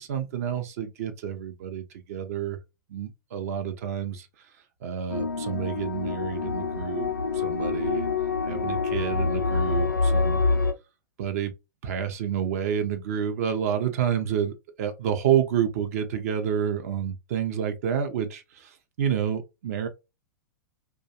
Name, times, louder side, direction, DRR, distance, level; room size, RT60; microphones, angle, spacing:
voice 1, 0.0-2.6 2.9-4.3 4.8-8.1 8.5-10.4 11.2-11.5 11.8-19.9, right 8 dB, 50° right, 0.5 m, -29 dB
sound 1, 5.1-10.7, left 4 dB, 90° left, 0.4 m, -26 dB
2.4 x 2.2 x 2.7 m
figure-of-eight pair, 105°, 10 cm